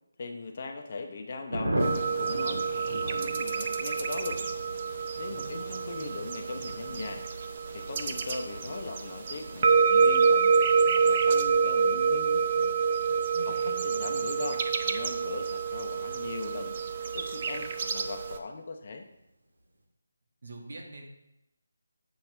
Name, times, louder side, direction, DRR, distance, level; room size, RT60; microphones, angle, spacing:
voice 1, 0.2-1.8 2.1-4.4 5.2-7.3 7.7-10.5 11.0-12.4 13.1-16.7 17.1-19.0, left 3 dB, 35° left, 4 dB, 0.8 m, -39 dB
Thunder, 1.5-17.6 17.9-18.0 18.3-18.4 18.7-19.1, right 1 dB, 80° right, 2.0 m, -40 dB
sound 1, 1.8-18.4, right 5 dB, 30° right, 0.5 m, -27 dB
voice 2, 5.3-6.2 13.3-14.2 20.4-21.0, right 1 dB, 65° right, 0 dB, 1.8 m, -44 dB
8.7 x 5.9 x 3.3 m, 0.86 s
figure-of-eight pair, 170°, 0 cm